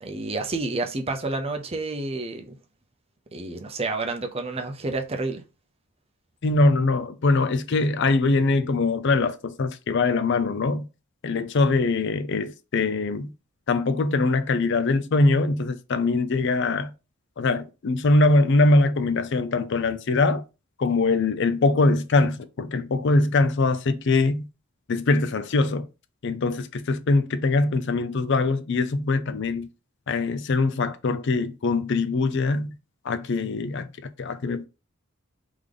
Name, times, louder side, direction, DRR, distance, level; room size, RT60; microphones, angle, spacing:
voice 1, 0.0-2.6 3.3-5.4, right 3 dB, 30° right, 0.6 m, -29 dB
voice 2, 6.4-10.8 11.2-13.3 13.7-16.9 17.4-20.4 20.8-24.5 24.9-25.9 26.2-29.7 30.1-32.7 33.0-34.7, left 3 dB, 55° left, 0.5 m, -22 dB
3.5 x 3.4 x 3.7 m
head